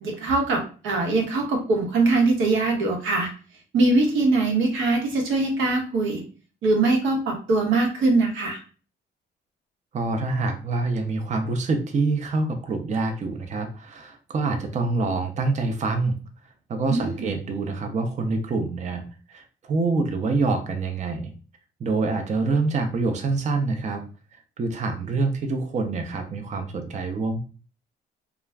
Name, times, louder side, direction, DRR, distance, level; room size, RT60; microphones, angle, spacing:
voice 1, 0.0-3.3 3.7-6.2 6.6-8.6 16.9-17.3, right 3 dB, 80° right, 2 dB, 0.9 m, -22 dB
voice 2, 9.9-16.2 16.7-21.3 21.8-24.0 24.6-27.4, right 3 dB, 35° right, 6 dB, 0.5 m, -26 dB
2.3 x 2.0 x 3.4 m, 0.37 s
cardioid pair, 90°, 20 cm